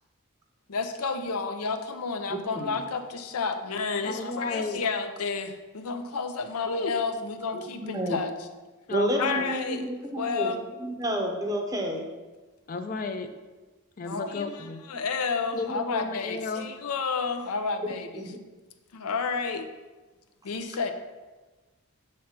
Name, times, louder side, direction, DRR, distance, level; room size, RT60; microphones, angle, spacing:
voice 1, 0.7-8.3 9.2-9.8 10.2-10.6 14.1-18.2 18.9-19.7 20.4-20.9, left 4 dB, 85° left, 7 dB, 0.6 m, -31 dB
voice 2, 2.3-2.8 7.5-8.2 8.9-10.5 10.8-12.0 18.2-18.4, right 1 dB, 15° right, 2 dB, 0.6 m, -30 dB
voice 3, 4.0-4.8 8.9-9.5 12.7-13.3 14.0-14.8 15.5-16.7, left 3 dB, 40° left, 8 dB, 0.4 m, -33 dB
7.1 x 3.2 x 5.7 m, 1.2 s
head